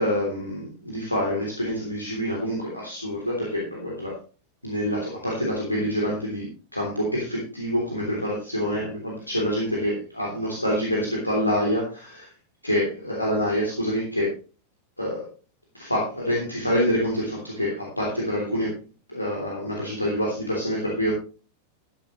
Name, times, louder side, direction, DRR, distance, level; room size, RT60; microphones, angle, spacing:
voice 1, 0.0-4.2 4.6-12.3 12.6-14.3 15.0-15.2 15.7-18.7 19.1-21.1, equal, 85° left, -3 dB, 3.3 m, -26 dB
13.5 x 11.0 x 3.2 m, 0.36 s
figure-of-eight pair, 90°, 0 cm